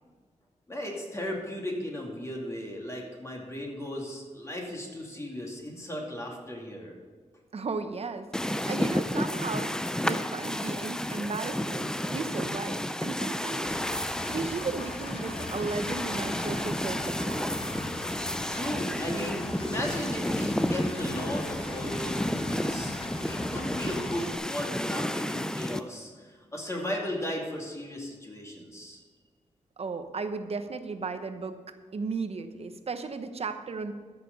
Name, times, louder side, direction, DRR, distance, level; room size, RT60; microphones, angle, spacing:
voice 1, 0.7-6.9 18.5-22.9 23.2-29.0, left 1 dB, 20° left, -1 dB, 2.5 m, -36 dB
voice 2, 7.5-9.7 10.0-13.7 14.3-17.5 29.8-33.9, right 4 dB, 50° right, 8 dB, 0.9 m, -35 dB
sound 1, 8.3-25.8, left 1 dB, 5° left, 0.5 m, -31 dB
Engine, 13.6-24.4, left 2 dB, 45° left, 0.9 m, -41 dB
14.0 x 6.8 x 5.3 m, 1.5 s
wide cardioid pair, 95°, 13 cm